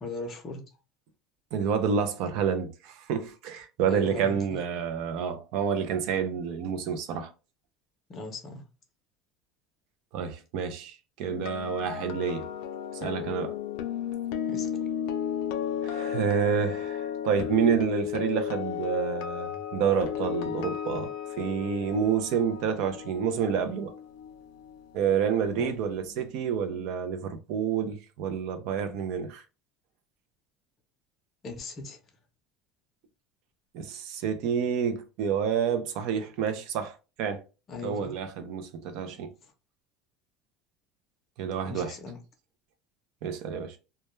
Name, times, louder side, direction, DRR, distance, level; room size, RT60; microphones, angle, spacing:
voice 1, 0.0-0.6 3.9-4.4 8.1-8.6 14.5-14.7 25.6-25.7 31.4-32.0 37.7-38.1 39.4-39.5 41.6-42.2, left 2 dB, 30° left, 0.6 m, -38 dB
voice 2, 1.5-7.3 10.1-12.5 12.9-13.6 15.8-21.1 21.4-23.9 24.9-29.4 33.7-37.4 37.8-39.3 41.4-42.0 43.2-43.8, right 7 dB, 60° right, 0.5 m, -29 dB
sound 1, 11.2-25.3 25.6-25.8, left 9 dB, 75° left, 0.4 m, -34 dB
2.2 x 2.2 x 3.0 m
cardioid pair, 155°, 0 cm